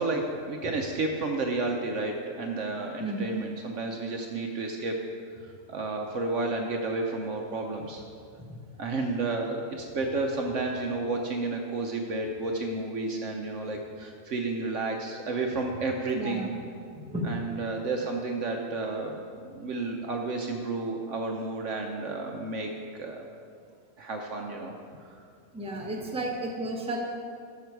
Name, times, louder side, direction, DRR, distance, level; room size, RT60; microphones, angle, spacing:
voice 1, 0.0-5.0 5.4-8.0 8.8-16.5 17.2-23.3 24.0-24.7 25.1-25.2, right 3 dB, 60° right, 2 dB, 1.0 m, -31 dB
voice 2, 3.0-3.4 16.1-16.5 16.9-17.3 25.5-27.0, right 1 dB, 5° right, -2 dB, 1.1 m, -33 dB
12.5 x 6.7 x 4.6 m, 2.3 s
omnidirectional pair, 1.5 m